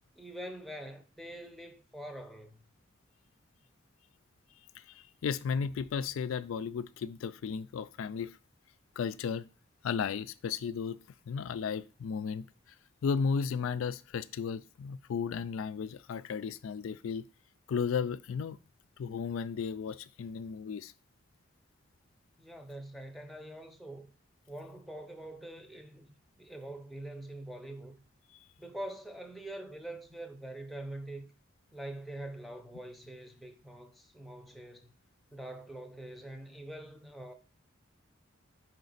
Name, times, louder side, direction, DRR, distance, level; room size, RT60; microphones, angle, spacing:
voice 1, 0.1-2.6 22.4-24.1 24.5-26.1 26.4-28.0 28.6-31.2 31.7-34.9 35.3-37.3, right 1 dB, ahead, 0.7 m, -44 dB
voice 2, 4.8-8.4 9.0-9.4 9.8-11.0 11.3-12.4 13.0-17.2 17.7-18.6 19.0-20.9, left 6 dB, 85° left, 0.3 m, -34 dB
5.1 x 5.0 x 4.0 m
head